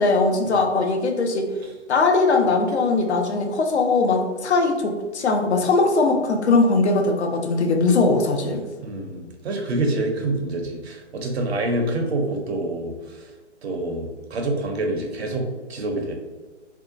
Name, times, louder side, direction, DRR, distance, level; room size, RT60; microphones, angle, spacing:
voice 1, 0.0-1.5 1.9-8.6, left 3 dB, 65° left, 3 dB, 0.6 m, -20 dB
voice 2, 8.8-13.3 13.6-16.1, right 2 dB, 60° right, 2 dB, 0.6 m, -27 dB
2.6 x 2.2 x 2.5 m, 1.3 s
figure-of-eight pair, 130°, 36 cm